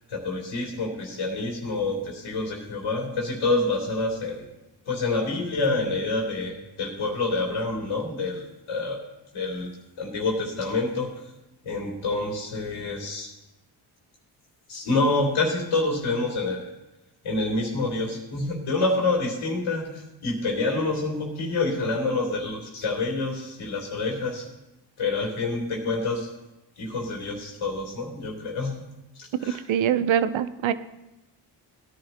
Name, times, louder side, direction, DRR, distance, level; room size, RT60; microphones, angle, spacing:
voice 1, 0.1-4.4 4.8-9.0 9.3-9.7 10.0-11.1 11.6-13.3 14.7-16.7 17.2-24.5 25.0-26.3 26.8-28.8 29.1-29.6, left 3 dB, 75° left, -3 dB, 3.0 m, -27 dB
voice 2, 29.7-30.7, right 9 dB, 65° right, 13 dB, 0.8 m, -23 dB
17.0 x 10.5 x 2.9 m, 0.96 s
supercardioid pair, 50°, 50 cm